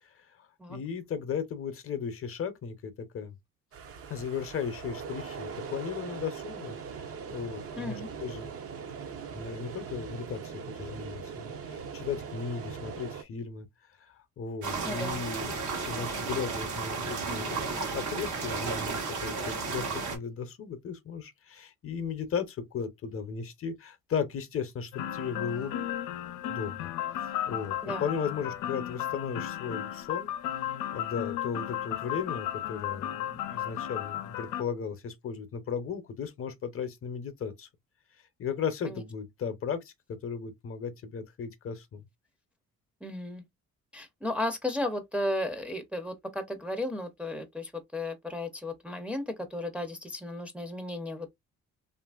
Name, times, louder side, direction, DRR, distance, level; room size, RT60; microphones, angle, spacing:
voice 1, 0.0-3.4 4.1-8.6 9.3-25.9 26.5-26.9 27.2-30.3 30.7-37.7 38.1-42.1, left 6 dB, 45° left, 0.6 m, -36 dB
sound 1, 3.7-13.2, right 6 dB, 50° right, 0.6 m, -41 dB
voice 2, 7.8-8.1 14.9-15.2 27.8-28.1 38.8-39.0 43.0-43.4 43.9-51.3, left 1 dB, 5° right, 0.5 m, -34 dB
sound 2, 14.6-20.2, right 4 dB, 75° right, 1.0 m, -33 dB
sound 3, 24.9-34.6, left 12 dB, 85° left, 0.5 m, -34 dB
2.8 x 2.5 x 2.3 m
cardioid pair, 90°, 30 cm